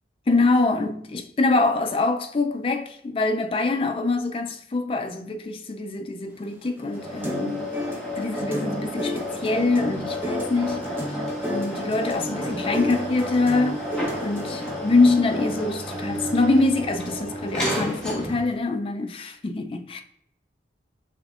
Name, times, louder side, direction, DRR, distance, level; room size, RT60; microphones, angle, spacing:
voice 1, 0.3-7.6 8.2-10.8 11.5-13.8 14.2-20.0, left 3 dB, 30° left, 0.4 m, -24 dB
sound 1, 6.5-14.7, left 1 dB, 10° right, 0.7 m, -33 dB
sound 2, 6.9-18.6, equal, 5° left, 1.2 m, -31 dB
5.7 x 3.5 x 2.4 m
head